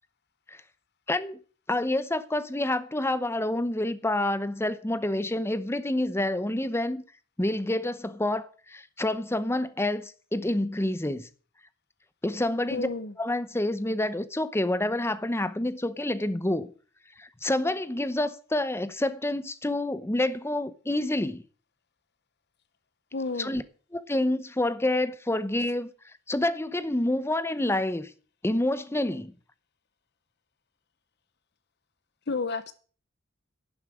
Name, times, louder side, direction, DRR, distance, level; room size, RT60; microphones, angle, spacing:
voice 1, 1.1-1.4 1.7-7.0 7.4-11.3 12.2-12.9 13.2-16.7 17.2-21.4 23.4-23.6 23.9-25.9 26.3-28.1 28.4-29.3, left 1 dB, 15° left, 0.8 m, -28 dB
voice 2, 12.7-13.2 23.1-23.6 32.3-32.7, left 4 dB, 60° left, 0.8 m, -31 dB
11.5 x 7.3 x 8.4 m
head